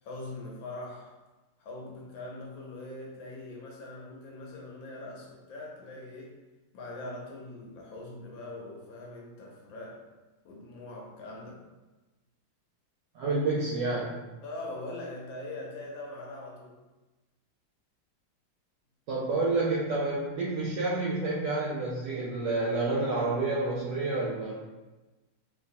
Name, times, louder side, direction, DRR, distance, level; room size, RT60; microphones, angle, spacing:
voice 1, 0.0-1.2 1.6-6.4 6.7-10.0 10.4-11.6 14.4-16.8, left 2 dB, 70° left, -2 dB, 1.3 m, -42 dB
voice 2, 13.1-14.2 19.1-24.5, right 2 dB, 80° right, -5 dB, 1.0 m, -29 dB
3.2 x 2.9 x 2.6 m, 1.2 s
omnidirectional pair, 2.4 m